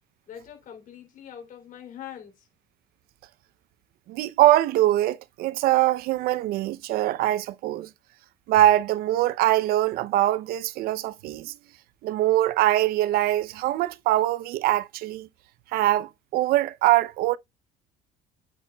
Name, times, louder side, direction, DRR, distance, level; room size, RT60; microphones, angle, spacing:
voice 1, 0.3-2.5, left 9 dB, 55° left, 3.2 m, -43 dB
voice 2, 4.1-7.9 8.5-11.6 12.0-15.3 15.7-17.4, right 14 dB, 70° right, 0.6 m, -23 dB
9.0 x 7.0 x 2.3 m
cardioid pair, 105°, 16 cm